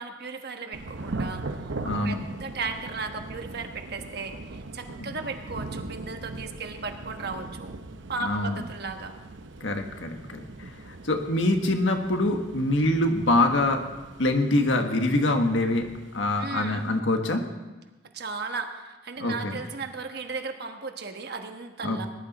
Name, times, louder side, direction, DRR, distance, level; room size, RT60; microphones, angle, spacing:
voice 1, 0.0-1.4 1.8-7.7 8.1-9.2 16.4-16.9 18.1-22.1, right 4 dB, 60° right, 5 dB, 1.2 m, -36 dB
Thunder / Rain, 0.7-17.0, right 2 dB, 80° right, 0.8 m, -40 dB
voice 2, 1.8-2.2 8.2-8.6 9.6-10.7 11.0-13.8 14.2-15.9 16.1-17.4 19.2-19.6 21.8-22.1, left 1 dB, 85° left, 5 dB, 1.5 m, -24 dB
20.0 x 11.0 x 4.2 m, 1.2 s
head